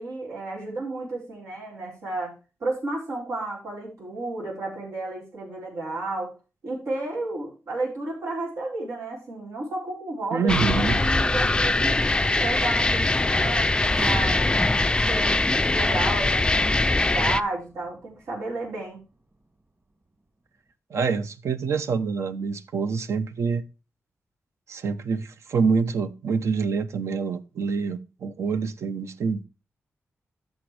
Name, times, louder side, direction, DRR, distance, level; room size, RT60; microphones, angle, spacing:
voice 1, 0.0-2.3 2.6-6.3 6.6-12.0 12.4-14.4 14.9-19.0, right 2 dB, 90° right, 4.3 m, -32 dB
voice 2, 10.3-11.0 20.9-23.6 24.7-29.4, right 5 dB, 70° right, 0.7 m, -26 dB
sound 1, 10.5-17.4, left 2 dB, 15° left, 0.4 m, -22 dB
sound 2, 13.9-18.3, right 2 dB, 30° right, 2.1 m, -38 dB
14.0 x 5.3 x 3.3 m
cardioid pair, 95°, 5 cm